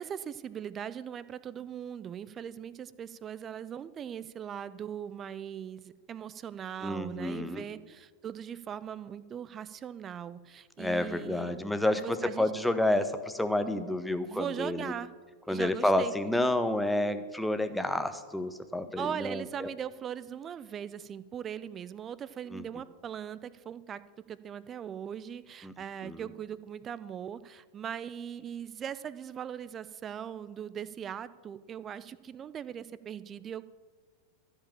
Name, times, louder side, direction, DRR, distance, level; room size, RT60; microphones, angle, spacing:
voice 1, 0.0-11.6 11.9-12.5 14.3-15.1 15.5-16.1 19.0-24.0 24.3-33.6, right 8 dB, 25° right, 17 dB, 0.5 m, -40 dB
voice 2, 6.8-7.7 10.8-14.9 15.5-19.7 22.5-22.7 25.6-25.7 26.0-26.3, left 1 dB, 5° left, 9 dB, 0.8 m, -30 dB
14.5 x 5.0 x 8.8 m, 1.5 s
figure-of-eight pair, 90°, 0 cm